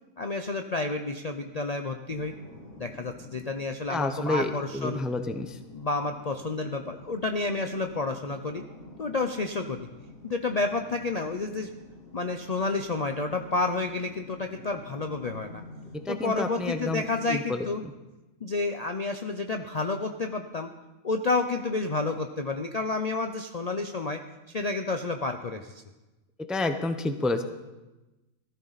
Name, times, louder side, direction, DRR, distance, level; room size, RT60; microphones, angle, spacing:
voice 1, 0.2-2.3 2.8-5.0 5.7-8.6 9.0-9.9 10.2-11.7 12.1-15.6 16.1-17.8 18.4-20.7 21.0-24.2 24.5-25.8, left 3 dB, 40° left, 5 dB, 0.6 m, -30 dB
sound 1, 2.1-17.1, left 2 dB, 80° left, 3.6 m, -49 dB
voice 2, 3.9-5.6 16.1-17.6 26.5-27.4, left 2 dB, ahead, 7 dB, 0.6 m, -29 dB
16.0 x 14.5 x 4.1 m, 1.1 s
omnidirectional pair, 1.4 m